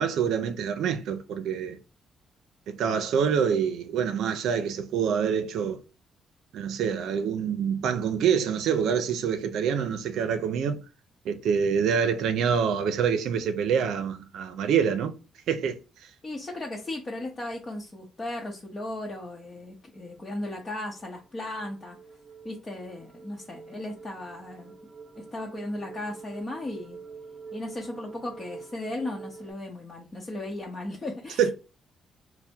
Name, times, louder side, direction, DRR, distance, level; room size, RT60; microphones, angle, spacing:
voice 1, 0.0-1.8 2.7-5.8 6.5-10.8 11.2-15.1 15.5-15.8 31.4-31.5, right 7 dB, 80° right, 0.5 m, -26 dB
voice 2, 16.2-22.0 22.4-24.7 25.2-27.0 27.5-31.5, left 1 dB, 30° left, 0.8 m, -36 dB
sound 1, 19.9-29.5, right 5 dB, 25° right, 0.8 m, -46 dB
3.4 x 2.1 x 4.2 m
cardioid pair, 90°, 0 cm